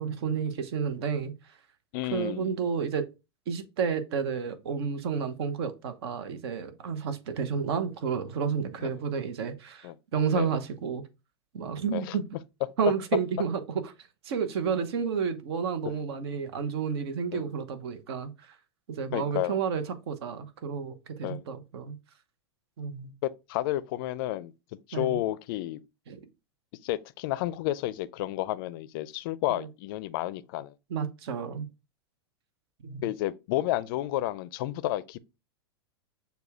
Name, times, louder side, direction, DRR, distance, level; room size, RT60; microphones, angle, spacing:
voice 1, 0.0-1.3 2.1-3.0 3.5-11.0 11.5-12.2 12.8-13.9 14.2-18.5 18.9-22.0 22.8-23.1 24.9-25.2 26.1-26.2 29.6-29.7 30.9-31.7 32.8-33.1, right 6 dB, 65° right, 0.9 m, -31 dB
voice 2, 1.9-2.6 8.8-8.9 9.8-10.0 10.3-10.5 11.9-12.2 15.8-16.0 17.3-17.5 19.1-19.6 21.2-21.5 23.2-24.5 24.9-25.8 26.8-30.7 33.0-35.2, left 15 dB, 55° left, 0.4 m, -31 dB
6.7 x 2.3 x 3.5 m
hypercardioid pair, 110°, 14 cm